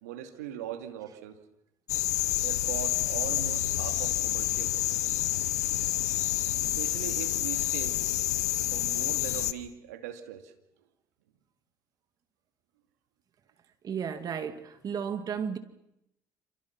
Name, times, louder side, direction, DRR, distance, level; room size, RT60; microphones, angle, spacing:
voice 1, 0.0-1.4 2.4-5.0 6.6-8.0 8.7-10.5, right 10 dB, 85° right, 2.5 m, -40 dB
sound 1, 1.9-9.5, left 13 dB, 85° left, 1.0 m, -28 dB
voice 2, 13.8-15.6, right 7 dB, 50° right, 2.1 m, -33 dB
28.5 x 28.0 x 6.0 m
hypercardioid pair, 60°, 8 cm